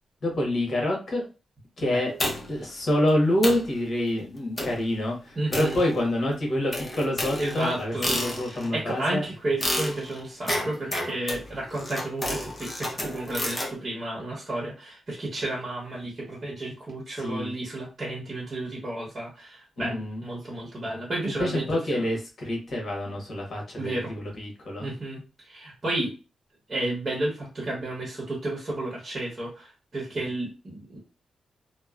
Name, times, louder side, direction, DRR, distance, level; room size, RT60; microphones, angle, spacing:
voice 1, 0.2-1.3 1.8-2.1 2.5-9.2 17.2-17.5 19.8-20.2 21.4-24.9, left 1 dB, 50° left, -1 dB, 1.2 m, -27 dB
sound 1, 2.2-2.7 3.1-3.2 3.4-3.7 4.6-4.9 5.5-6.2 6.7-8.7 9.6-13.7, left 1 dB, 20° left, 0.7 m, -31 dB
voice 2, 5.4-5.8 7.4-8.1 8.5-21.6 21.9-22.0 23.8-24.1 24.8-26.1 26.7-31.0, right 2 dB, 35° right, -4 dB, 1.0 m, -32 dB
2.9 x 2.1 x 2.4 m, 0.32 s
wide cardioid pair, 130°, 0 cm